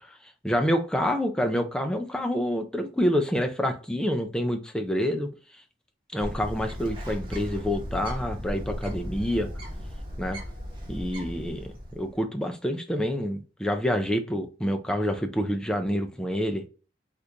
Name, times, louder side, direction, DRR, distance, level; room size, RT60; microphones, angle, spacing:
voice 1, 0.1-5.3 6.1-9.5 10.2-10.4 10.9-16.6, equal, 5° left, 0.4 m, -27 dB
Bird, 6.2-12.1, equal, 30° right, 1.0 m, -36 dB
3.6 x 2.5 x 2.7 m
head